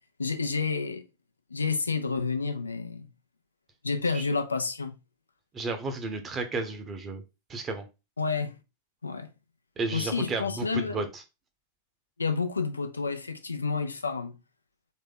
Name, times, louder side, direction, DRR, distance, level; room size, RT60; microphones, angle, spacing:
voice 1, 0.2-1.1 1.5-3.1 3.8-5.0 8.2-8.6 9.0-9.3 9.9-11.1 12.2-14.4, left 4 dB, 80° left, 0.6 m, -29 dB
voice 2, 5.5-7.2 7.5-7.9 9.8-11.2, right 3 dB, 25° right, 1.0 m, -33 dB
4.1 x 3.1 x 3.7 m
figure-of-eight pair, 90°, 0 cm